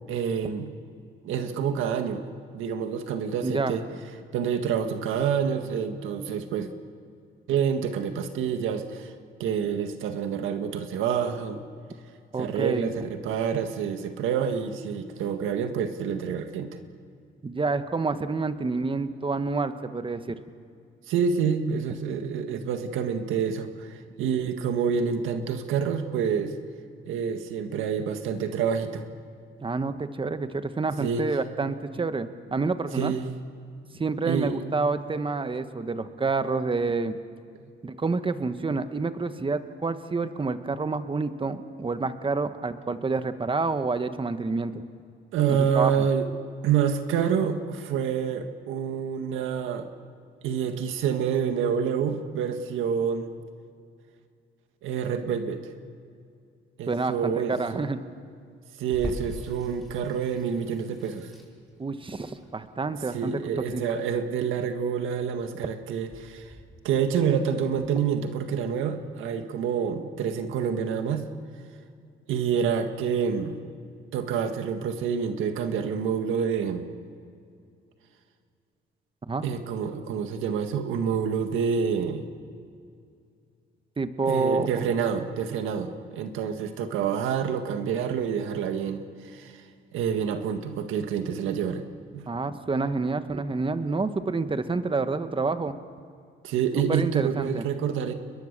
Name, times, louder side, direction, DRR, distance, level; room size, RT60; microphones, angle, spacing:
voice 1, 0.1-0.7 1.2-2.2 2.5-3.8 4.3-6.7 7.5-9.1 9.4-11.6 12.4-16.7 21.1-26.5 27.1-29.1 31.0-31.3 32.9-33.3 34.2-34.6 45.3-46.3 46.6-49.9 50.4-53.3 54.8-55.6 56.8-57.9 58.8-61.3 63.1-66.5 66.8-71.3 72.3-73.6 74.1-76.9 79.4-82.2 84.3-89.6 89.9-91.8 92.1-92.3 96.4-98.1, right 7 dB, 90° right, 7 dB, 1.7 m, -27 dB
voice 2, 3.4-3.7 12.3-12.9 17.4-20.4 29.6-33.2 34.0-37.2 37.8-44.8 45.5-46.0 56.9-58.0 61.8-63.8 79.3-79.4 84.0-84.9 92.3-95.7 96.9-97.6, right 3 dB, 25° right, 10 dB, 1.4 m, -28 dB
Water tap faucet / Sink (filling or washing), 58.9-67.9, equal, ahead, 5.8 m, -44 dB
30.0 x 21.5 x 6.7 m, 2.3 s
cardioid pair, 90°, 20 cm